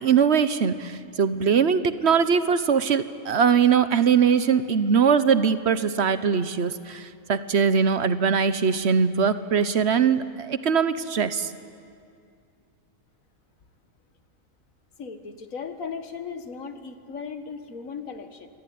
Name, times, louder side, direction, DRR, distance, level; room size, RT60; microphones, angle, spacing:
voice 1, 0.0-11.5, right 6 dB, 55° right, 13 dB, 1.1 m, -21 dB
voice 2, 15.0-18.5, left 5 dB, 90° left, 8 dB, 1.9 m, -37 dB
26.5 x 22.0 x 9.4 m, 2.3 s
omnidirectional pair, 1.4 m